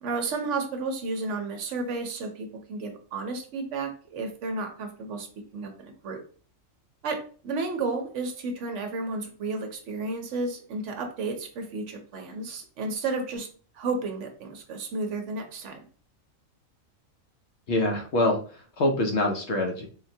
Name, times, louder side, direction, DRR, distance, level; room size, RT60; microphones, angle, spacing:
voice 1, 0.0-5.3 5.5-6.2 7.0-13.5 13.7-15.8, right 3 dB, 70° right, 4 dB, 0.9 m, -32 dB
voice 2, 17.7-19.9, left 2 dB, 65° left, 2 dB, 0.8 m, -25 dB
3.7 x 2.2 x 2.6 m, 0.41 s
omnidirectional pair, 1.4 m